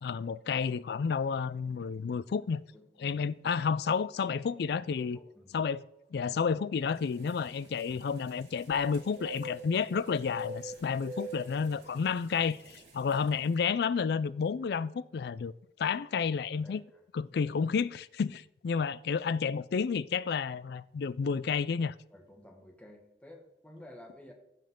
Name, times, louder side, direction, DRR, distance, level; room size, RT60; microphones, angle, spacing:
voice 1, 0.0-2.6 3.0-5.2 5.5-5.8 6.1-15.5 15.8-16.8 17.1-21.9, left 6 dB, 60° left, 0.3 m, -31 dB
voice 2, 2.7-3.3 4.3-4.7 4.9-5.5 16.6-17.0 22.1-24.3, left 1 dB, 10° left, 1.5 m, -53 dB
sound 1, 6.9-13.5, right 1 dB, 65° right, 3.2 m, -46 dB
15.5 x 5.5 x 3.7 m
head